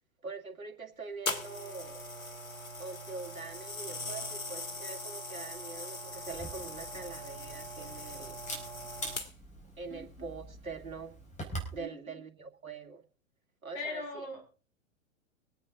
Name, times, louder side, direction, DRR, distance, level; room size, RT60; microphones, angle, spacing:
voice 1, 0.2-2.1 2.8-8.4 9.8-11.2 11.7-13.0 13.6-14.3, right 4 dB, 85° right, 4 dB, 2.2 m, -44 dB
sound 1, 1.3-9.6 10.3-10.5, left 2 dB, 80° left, 2.4 m, -40 dB
Camera, 6.3-11.8, right 1 dB, 15° left, 4.7 m, -44 dB
voice 2, 11.8-12.2 13.7-14.5, left 2 dB, 45° left, 2 dB, 7.1 m, -40 dB
24.0 x 8.8 x 3.7 m, 0.35 s
figure-of-eight pair, 105°, 40 cm